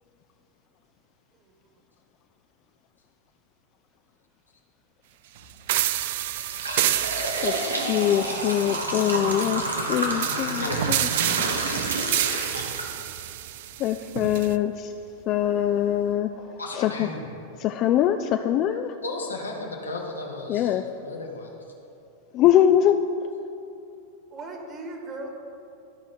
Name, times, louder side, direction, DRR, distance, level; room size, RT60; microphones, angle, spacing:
sound 1, 5.4-5.6 6.1-13.3 13.7-13.8 14.7-14.8 15.3-15.4 15.8-16.0, right 1 dB, 90° right, 1.1 m, -29 dB
sound 2, 5.7-14.5, right 13 dB, 60° right, 0.3 m, -29 dB
voice 1, 7.4-11.1 13.8-14.9 15.3-17.1 17.6-18.9 20.5-20.9 22.3-23.1, left 11 dB, 45° left, 7 dB, 0.3 m, -23 dB
voice 2, 16.6-17.2 19.0-21.5, left 2 dB, 90° left, 0 dB, 1.3 m, -34 dB
voice 3, 24.3-25.3, right 2 dB, 30° right, 2 dB, 1.7 m, -38 dB
13.5 x 4.9 x 4.3 m, 2.7 s
hypercardioid pair, 95°, 0 cm